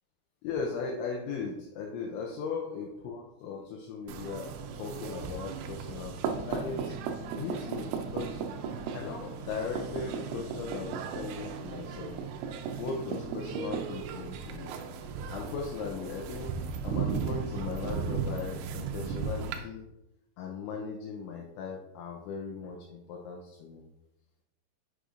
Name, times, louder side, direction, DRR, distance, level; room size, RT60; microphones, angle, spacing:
voice 1, 0.4-7.0 7.3-8.4 8.9-12.2 12.8-14.7 15.3-16.5 16.8-19.9 20.4-23.8, left 5 dB, 80° left, -1 dB, 2.9 m, -38 dB
sound 1, 4.1-19.6, right 6 dB, 80° right, 2.8 m, -36 dB
8.1 x 6.4 x 2.5 m, 0.89 s
omnidirectional pair, 5.5 m